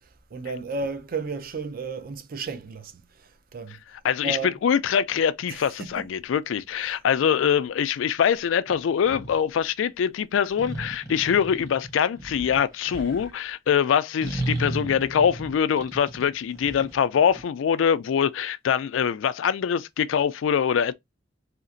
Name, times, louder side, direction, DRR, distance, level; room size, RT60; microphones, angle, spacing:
voice 1, 0.3-2.9 3.5-3.8 4.2-4.6 5.5-6.1 6.8-7.0, right 4 dB, 50° right, 0.5 m, -33 dB
voice 2, 3.9-20.9, left 8 dB, 85° left, 0.3 m, -23 dB
sound 1, 8.7-9.4 10.5-13.3 14.2-17.4, right 1 dB, 15° right, 0.9 m, -34 dB
2.9 x 2.4 x 2.5 m
head